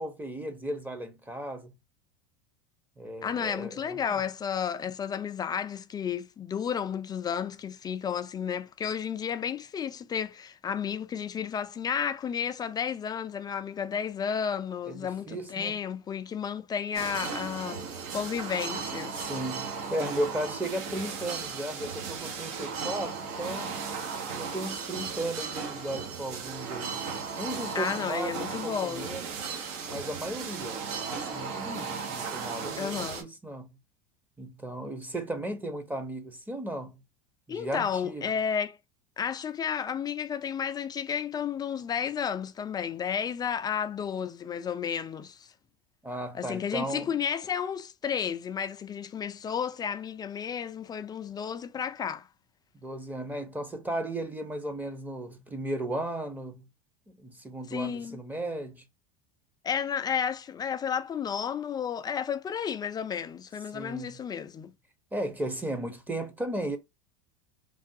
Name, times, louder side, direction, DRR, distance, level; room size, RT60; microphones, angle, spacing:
voice 1, 0.0-1.7 3.0-4.2 14.9-15.8 19.1-23.8 24.4-27.0 27.4-29.3 29.9-33.8 34.4-37.0 37.5-38.3 46.0-47.1 52.8-56.7 57.1-58.8 63.7-64.2 65.1-66.8, right 1 dB, 10° right, 0.7 m, -35 dB
voice 2, 3.2-19.2 27.7-29.2 32.8-33.3 37.5-38.8 39.2-45.5 46.3-52.3 57.7-58.2 59.6-64.7, left 7 dB, 20° left, 0.3 m, -32 dB
sound 1, 16.9-33.2, right 5 dB, 65° right, 1.0 m, -36 dB
3.3 x 2.3 x 2.6 m
supercardioid pair, 120°, 20 cm